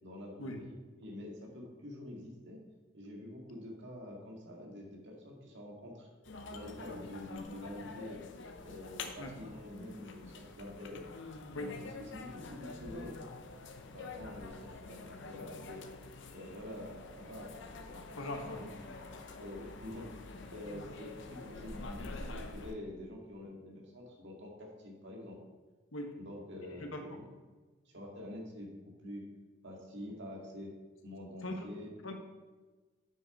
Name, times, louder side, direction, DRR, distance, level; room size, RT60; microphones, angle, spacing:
voice 1, 0.0-2.6 2.9-6.1 6.5-8.2 8.6-11.0 11.5-13.6 13.9-15.8 16.3-18.9 19.4-20.1 20.5-25.4 26.2-27.4 27.9-29.2 29.6-30.7 31.0-31.9, left 1 dB, 55° right, 0 dB, 2.0 m, -47 dB
sound 1, 6.2-22.7, left 3 dB, 55° left, 0.7 m, -47 dB
voice 2, 18.2-18.6 25.9-26.1 26.8-27.0 31.4-31.7 32.0-32.1, left 1 dB, 75° left, 4 dB, 1.3 m, -40 dB
7.9 x 6.2 x 5.4 m, 1.3 s
head